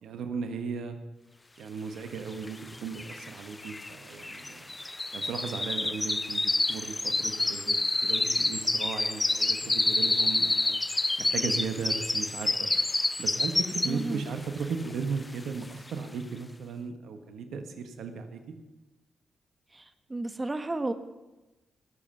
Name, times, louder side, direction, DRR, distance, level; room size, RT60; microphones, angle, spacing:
voice 1, 0.0-1.0 1.6-4.7 5.1-10.8 11.2-12.7 13.2-18.4, right 5 dB, 75° right, 7 dB, 1.3 m, -36 dB
sound 1, 2.5-2.6 2.7-14.2 14.6-14.9 15.4-15.5, left 2 dB, 25° left, 0.4 m, -28 dB
voice 2, 13.9-14.2 19.7-20.9, right 2 dB, 25° right, 9 dB, 1.3 m, -33 dB
17.5 x 7.4 x 7.1 m, 1.0 s
hypercardioid pair, 45°, 0 cm